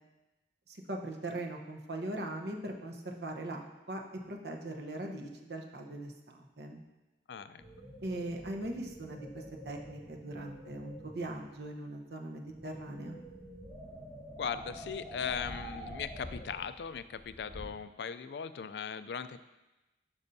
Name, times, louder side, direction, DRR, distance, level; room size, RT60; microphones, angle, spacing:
voice 1, 0.7-4.0 4.3-6.8 8.0-13.2, right 1 dB, 65° right, 2 dB, 0.9 m, -40 dB
voice 2, 7.3-7.6 14.4-19.4, left 7 dB, 70° left, 12 dB, 0.4 m, -38 dB
sound 1, 7.6-11.7 12.2-17.7, equal, 25° right, 2.5 m, -47 dB
12.0 x 5.4 x 2.7 m, 1.0 s
head